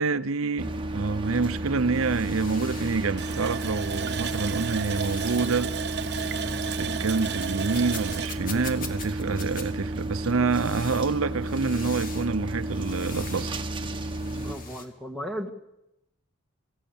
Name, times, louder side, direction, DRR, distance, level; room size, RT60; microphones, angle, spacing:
voice 1, 0.0-6.2 6.6-13.5, right 4 dB, 85° right, 0.7 m, -27 dB
sound 1, 0.6-14.6, right 1 dB, 25° right, 1.5 m, -32 dB
sound 2, 1.7-3.1 3.5-4.0 4.6-5.7 6.1-6.3 6.6-9.7 10.5-12.3 12.6-13.6 13.9-14.9, left 4 dB, 40° left, 2.4 m, -43 dB
Water tap faucet, 3.2-9.7 10.0-10.1 10.6-10.7, right 8 dB, 55° right, 1.0 m, -34 dB
voice 2, 14.3-15.5, equal, ahead, 1.8 m, -35 dB
27.5 x 16.0 x 7.2 m
head